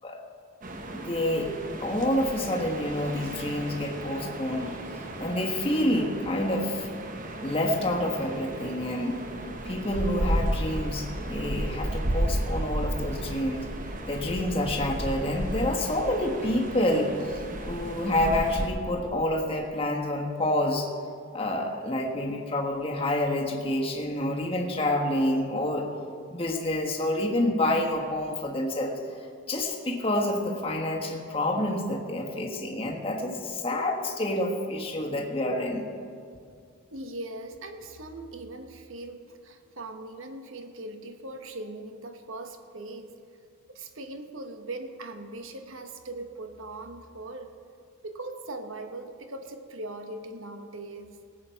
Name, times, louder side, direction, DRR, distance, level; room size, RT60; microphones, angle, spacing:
sound 1, 0.6-18.7, right 1 dB, 40° right, 1.0 m, -33 dB
voice 1, 0.9-6.9 7.4-9.2 9.6-13.7 14.1-20.9 21.3-25.9 26.3-29.0 29.5-35.9, left 1 dB, 25° left, 1 dB, 1.3 m, -28 dB
voice 2, 36.9-43.1 43.7-47.5 48.0-51.2, right 2 dB, 70° right, 7 dB, 1.1 m, -40 dB
18.0 x 7.8 x 5.7 m, 2.2 s
head